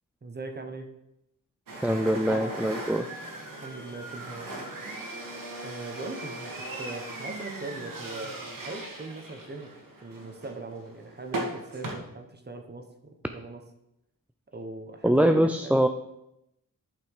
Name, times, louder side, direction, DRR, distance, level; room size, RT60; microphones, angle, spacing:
voice 1, 0.2-0.9 3.6-4.5 5.6-9.7 10.0-13.6 14.5-15.9, right 3 dB, 30° right, 5 dB, 1.2 m, -40 dB
sound 1, 1.7-12.0, right 2 dB, 65° right, 2.0 m, -38 dB
voice 2, 1.8-3.1 15.0-15.9, equal, 5° right, 6 dB, 0.4 m, -23 dB
11.0 x 5.9 x 4.9 m, 0.83 s
wide cardioid pair, 110°, 35 cm